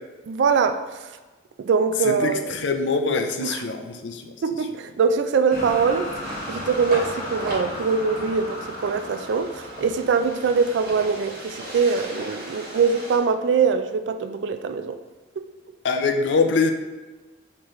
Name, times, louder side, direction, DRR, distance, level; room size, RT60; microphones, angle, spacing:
voice 1, 0.3-1.1 1.6-2.6 3.4-3.6 4.4-6.2 6.5-15.0, right 5 dB, 75° right, 9 dB, 0.3 m, -23 dB
voice 2, 2.0-4.2 15.8-16.7, left 4 dB, 75° left, 6 dB, 0.5 m, -23 dB
sound 1, 5.5-11.5, left 1 dB, 40° left, 0.9 m, -36 dB
sound 2, 6.2-13.2, right 1 dB, 50° right, 1.1 m, -37 dB
4.6 x 3.7 x 3.1 m, 1.2 s
head